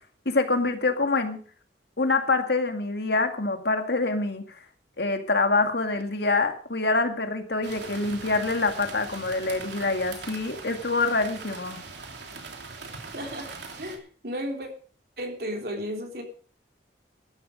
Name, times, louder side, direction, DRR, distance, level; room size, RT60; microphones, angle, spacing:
voice 1, 0.3-1.4 2.0-4.4 5.0-11.8, left 3 dB, 65° left, 6 dB, 2.2 m, -25 dB
sound 1, 7.6-14.0, right 4 dB, 75° right, 3.0 m, -41 dB
voice 2, 13.1-13.5 13.8-14.7 15.2-16.2, equal, 60° right, 3 dB, 3.6 m, -33 dB
14.0 x 11.5 x 5.1 m, 0.42 s
head